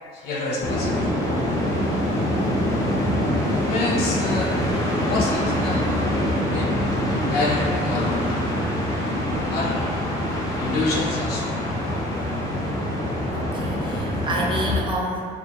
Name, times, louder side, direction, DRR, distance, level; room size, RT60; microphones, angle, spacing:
voice 1, 0.1-1.1 3.5-4.6 5.0-5.8 6.5-8.3 9.5-10.0 10.6-11.5, left 2 dB, 75° left, -3 dB, 0.5 m, -27 dB
sound 1, 0.6-14.8, left 1 dB, 20° left, 0.6 m, -24 dB
voice 2, 2.3-2.8 13.3-15.3, right 1 dB, 30° right, -3 dB, 0.4 m, -29 dB
2.4 x 2.0 x 2.8 m, 2.3 s
cardioid pair, 110°, 17 cm